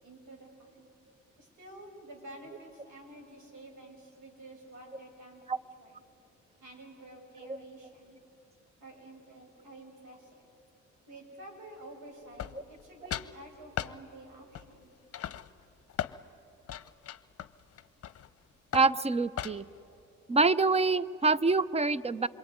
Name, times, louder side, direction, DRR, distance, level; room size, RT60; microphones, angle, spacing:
voice 1, 0.0-0.9 1.4-6.0 6.6-8.2 8.8-10.5 11.1-14.9, right 1 dB, 75° right, 2 dB, 6.2 m, -50 dB
sound 1, 12.4-12.8 13.1-13.3 13.8-14.0 14.5-14.8 15.1-16.2 16.7-18.3 18.7-19.0 19.4-19.8, left 10 dB, 50° left, 0.8 m, -37 dB
voice 2, 18.7-19.7 20.3-22.3, right 3 dB, 20° right, 17 dB, 0.7 m, -26 dB
27.5 x 22.0 x 9.6 m, 2.9 s
cardioid pair, 90°, 30 cm